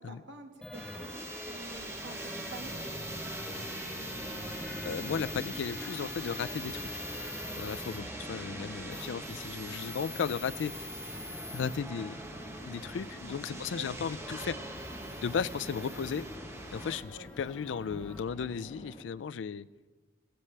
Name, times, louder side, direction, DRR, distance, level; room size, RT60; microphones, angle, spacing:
voice 1, 0.0-3.0 7.9-8.0 13.0-13.9 17.1-17.3, right 2 dB, 75° right, 3 dB, 1.8 m, -49 dB
sound 1, 0.6-18.2, left 1 dB, 5° left, 0.8 m, -44 dB
sound 2, 0.7-17.0, right 2 dB, 15° right, 1.1 m, -44 dB
sound 3, 1.5-19.0, left 1 dB, 35° left, 1.2 m, -51 dB
voice 2, 4.8-6.8 7.6-10.9 11.5-12.2 12.6-14.6 15.2-16.3 16.7-19.7, left 6 dB, 80° left, 19 dB, 0.4 m, -35 dB
17.5 x 14.5 x 3.3 m, 1.3 s
head